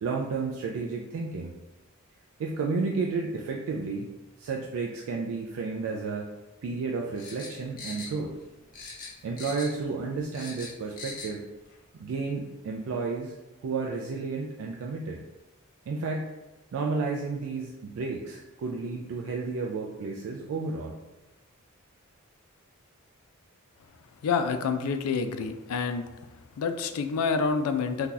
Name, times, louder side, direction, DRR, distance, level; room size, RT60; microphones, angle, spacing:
voice 1, 0.0-1.5 2.4-4.1 4.4-6.3 6.6-8.3 9.2-11.4 11.9-13.3 13.6-15.2 15.9-16.3 16.7-21.0, right 4 dB, 65° right, -1 dB, 0.3 m, -32 dB
sound 1, 7.2-8.5 8.7-9.9 10.1-11.3 11.7-11.8, left 4 dB, 40° left, 0.7 m, -41 dB
voice 2, 24.2-26.1 26.6-28.1, left 5 dB, 70° left, 9 dB, 0.3 m, -28 dB
2.7 x 2.3 x 3.8 m, 1.1 s
head